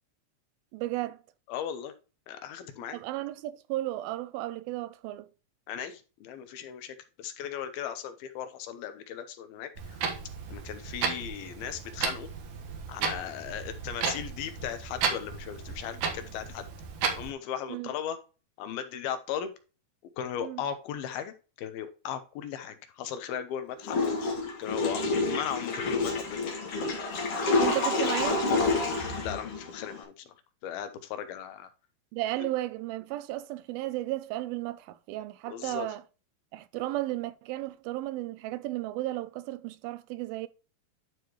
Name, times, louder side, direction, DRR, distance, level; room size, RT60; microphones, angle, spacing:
voice 1, 0.7-1.2 2.9-5.3 17.7-17.9 20.4-20.6 27.6-28.6 32.1-36.0 36.5-40.5, right 16 dB, 85° right, 2.4 m, -34 dB
voice 2, 1.5-1.9 2.3-3.0 5.7-10.0 10.5-12.3 12.9-16.7 17.2-18.2 18.6-19.5 20.2-24.1 24.6-26.5 29.2-30.4 30.6-31.7 35.5-35.9, left 9 dB, 90° left, 2.9 m, -37 dB
Clock, 9.8-17.3, right 6 dB, 65° right, 2.7 m, -34 dB
Water / Toilet flush, 23.8-30.0, left 3 dB, 45° left, 2.3 m, -28 dB
11.5 x 4.8 x 3.0 m
omnidirectional pair, 4.3 m